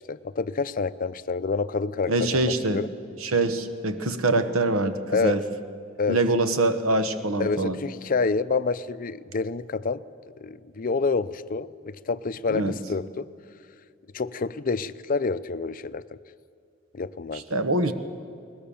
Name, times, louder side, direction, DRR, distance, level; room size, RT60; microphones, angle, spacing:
voice 1, 0.0-2.9 5.1-5.4 6.0-6.2 7.4-10.0 10.4-13.3 14.1-16.2 16.9-17.4, left 4 dB, 40° left, 15 dB, 0.5 m, -28 dB
voice 2, 2.1-2.8 3.2-5.4 6.1-7.8 12.5-12.7 17.3-17.9, right 2 dB, 85° right, 10 dB, 1.1 m, -24 dB
21.5 x 19.5 x 7.0 m, 2.4 s
head